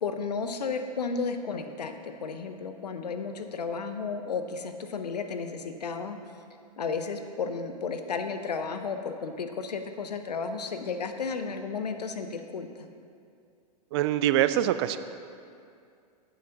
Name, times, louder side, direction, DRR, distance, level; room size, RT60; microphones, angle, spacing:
voice 1, 0.0-6.2 6.8-12.7, left 5 dB, 75° left, 7 dB, 0.8 m, -33 dB
voice 2, 13.9-15.0, right 12 dB, 40° right, 13 dB, 0.4 m, -24 dB
10.5 x 9.6 x 2.9 m, 2.4 s
figure-of-eight pair, 100°, 21 cm